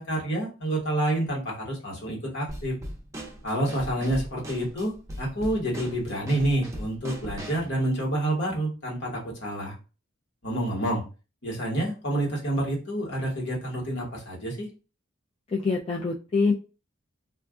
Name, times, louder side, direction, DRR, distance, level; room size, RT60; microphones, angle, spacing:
voice 1, 0.0-2.7 3.4-9.7 10.4-11.0 11.4-14.7, right 1 dB, 60° left, -2 dB, 1.3 m, -28 dB
Drum kit / Snare drum, 2.5-7.7, right 1 dB, 15° right, 0.6 m, -39 dB
voice 2, 15.5-16.5, left 4 dB, 30° left, -2 dB, 0.3 m, -25 dB
2.4 x 2.3 x 3.6 m, 0.33 s
head